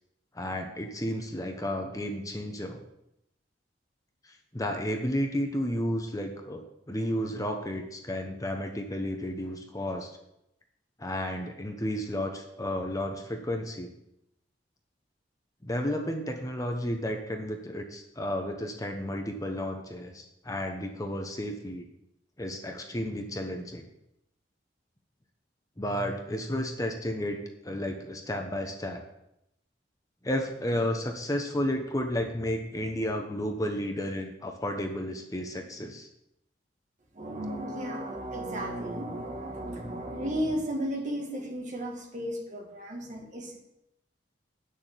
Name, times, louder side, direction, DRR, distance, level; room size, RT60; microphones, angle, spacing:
voice 1, 0.3-2.8 4.5-10.1 11.0-13.9 15.6-21.9 22.4-23.9 25.8-29.0 30.2-36.1, equal, 20° left, 3 dB, 1.0 m, -32 dB
voice 2, 37.1-43.6, equal, 45° right, 1 dB, 2.1 m, -34 dB
8.8 x 6.6 x 7.4 m, 0.83 s
head